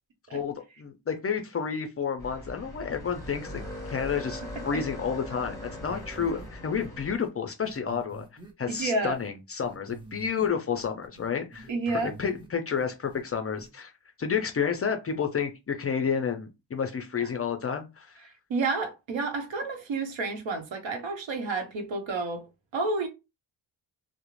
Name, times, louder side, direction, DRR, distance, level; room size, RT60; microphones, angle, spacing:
voice 1, 0.3-3.6 3.9-8.2 8.6-13.9 14.2-18.2, left 6 dB, 35° left, 0.4 m, -30 dB
sound 1, 2.2-7.2, left 1 dB, 5° left, 1.1 m, -40 dB
sound 2, 5.9-6.5 6.8-6.9 7.2-7.3 7.6-9.3 9.6-10.5 10.8-12.5 12.8-13.2 13.6-13.7, right 3 dB, 10° right, 0.8 m, -47 dB
voice 2, 8.7-9.2 11.7-12.1 17.2-17.3 18.5-22.5 22.7-23.1, right 3 dB, 75° right, 0.8 m, -30 dB
2.4 x 2.0 x 3.0 m
cardioid pair, 105°, 46 cm